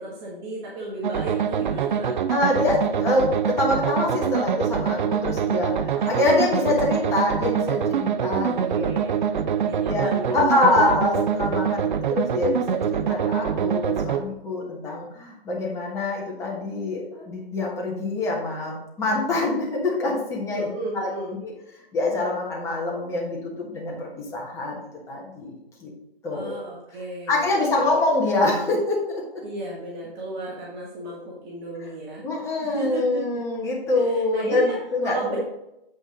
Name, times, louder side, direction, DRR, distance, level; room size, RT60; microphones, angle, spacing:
voice 1, 0.0-2.1 5.9-6.1 8.5-9.1 9.5-10.9 20.5-21.3 26.3-28.0 29.4-32.2 32.6-33.4 33.9-34.8 35.0-35.4, right 2 dB, 25° right, -4 dB, 1.4 m, -34 dB
sound 1, 1.0-14.2, right 7 dB, 55° right, 0.6 m, -25 dB
voice 2, 2.3-8.9 9.3-9.4 9.9-20.7 20.9-21.1 21.4-21.5 21.9-24.8 25.1-25.9 26.2-26.6 27.3-29.4 32.2-35.4, left 2 dB, 10° left, -3 dB, 1.4 m, -25 dB
8.1 x 5.3 x 3.7 m, 0.86 s
hypercardioid pair, 145°, 30 cm